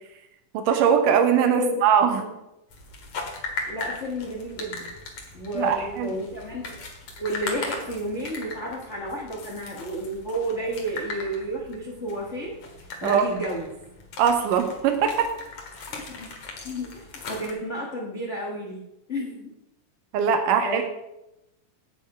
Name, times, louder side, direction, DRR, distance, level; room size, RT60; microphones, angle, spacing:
voice 1, 0.5-2.2 5.6-6.1 13.0-13.2 14.2-15.3 20.1-20.8, right 7 dB, 90° right, 6 dB, 2.6 m, -21 dB
voice 2, 1.5-1.8 2.2-2.4 3.7-4.9 5.3-6.8 7.2-12.5 13.0-13.7 15.9-16.3 16.6-18.8 19.1-19.5 20.5-20.8, equal, 75° left, -1 dB, 0.6 m, -31 dB
sound 1, 2.7-17.5, left 3 dB, 55° left, 2.5 m, -38 dB
9.6 x 8.3 x 4.8 m, 0.89 s
omnidirectional pair, 3.6 m